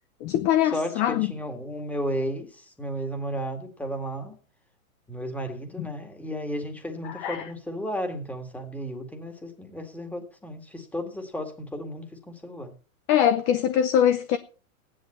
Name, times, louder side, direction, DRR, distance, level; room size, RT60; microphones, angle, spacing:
voice 1, 0.2-1.3 5.8-5.9 7.0-7.4 13.1-14.4, left 10 dB, 25° left, 0.7 m, -23 dB
voice 2, 0.7-4.4 5.1-12.7, equal, 5° left, 2.0 m, -33 dB
15.5 x 10.5 x 4.3 m
hypercardioid pair, 140°, 42 cm